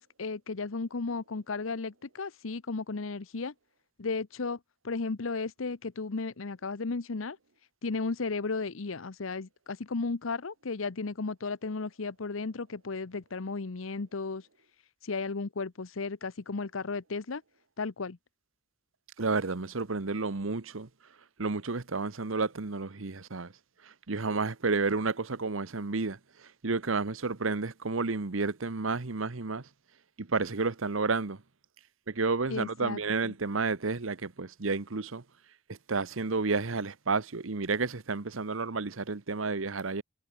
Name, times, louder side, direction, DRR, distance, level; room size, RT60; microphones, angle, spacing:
voice 1, 0.0-3.5 4.0-4.6 4.8-7.4 7.8-14.5 15.0-17.4 17.8-18.2 32.5-33.3, left 4 dB, 85° left, 0.9 m, -34 dB
voice 2, 19.2-20.9 21.4-23.5 24.1-26.2 26.6-29.6 30.2-31.4 32.1-35.2 35.7-40.0, right 4 dB, 85° right, 1.1 m, -31 dB
head